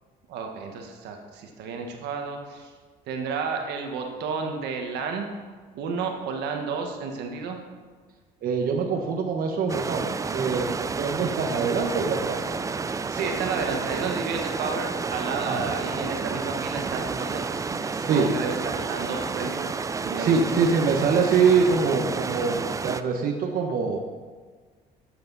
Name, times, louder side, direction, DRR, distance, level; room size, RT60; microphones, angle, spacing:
voice 1, 0.3-2.7 3.1-5.3 5.7-7.6 13.1-19.7 20.0-20.3, right 5 dB, 80° right, 3 dB, 1.4 m, -31 dB
voice 2, 8.4-10.7 11.0-12.4 15.3-15.7 18.0-18.3 20.2-24.0, right 5 dB, 60° right, 2 dB, 1.2 m, -24 dB
sound 1, 9.7-23.0, right 4 dB, 20° right, 0.4 m, -30 dB
12.5 x 8.2 x 4.1 m, 1.5 s
cardioid pair, 110°, 17 cm